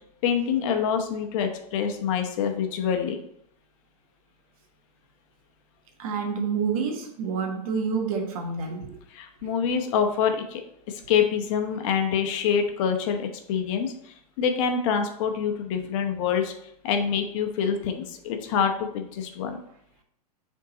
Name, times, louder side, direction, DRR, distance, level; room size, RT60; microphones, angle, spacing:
voice 1, 0.2-3.2 9.1-10.6 10.9-16.5 16.8-19.6, left 7 dB, 50° left, 5 dB, 0.9 m, -26 dB
voice 2, 6.0-9.0, right 5 dB, 60° right, 3 dB, 1.3 m, -28 dB
6.7 x 3.7 x 4.0 m, 0.72 s
hypercardioid pair, 115°, 20 cm